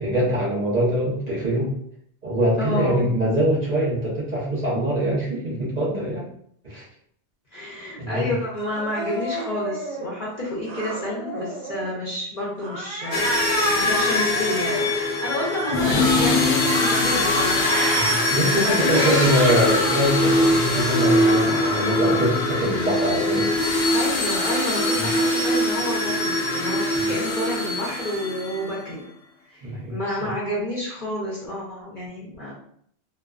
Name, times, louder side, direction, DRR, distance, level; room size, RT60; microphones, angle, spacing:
voice 1, 0.0-1.7 2.2-6.2 6.6-6.8 8.0-8.3 13.8-14.0 17.9-23.5 24.9-25.1 27.0-27.1 29.6-30.0, equal, 40° right, -7 dB, 0.8 m, -23 dB
voice 2, 2.6-3.1 7.5-13.4 13.8-19.3 23.9-29.1 29.5-32.5, left 1 dB, 45° left, -6 dB, 0.7 m, -29 dB
Cat, 8.7-10.1 10.6-12.0 12.6-14.9 15.4-18.3 18.8-20.0 20.5-22.3, right 2 dB, 75° right, 0.8 m, -30 dB
sound 1, 13.1-28.7, left 2 dB, 80° left, 0.9 m, -22 dB
2.3 x 2.3 x 2.4 m, 0.65 s
omnidirectional pair, 1.1 m